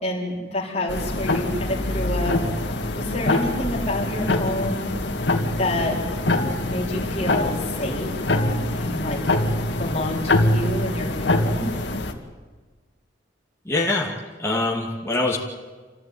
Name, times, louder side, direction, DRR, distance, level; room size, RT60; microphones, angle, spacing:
voice 1, 0.0-2.4 2.9-5.0 5.6-6.0 6.7-9.4 9.8-11.7, left 1 dB, 35° left, -3 dB, 3.7 m, -28 dB
sound 1, 0.9-12.1, left 2 dB, 65° left, 2.3 m, -24 dB
voice 2, 13.6-14.1 14.4-15.4, left 2 dB, 15° left, -3 dB, 2.6 m, -23 dB
27.0 x 15.5 x 9.5 m, 1.4 s
head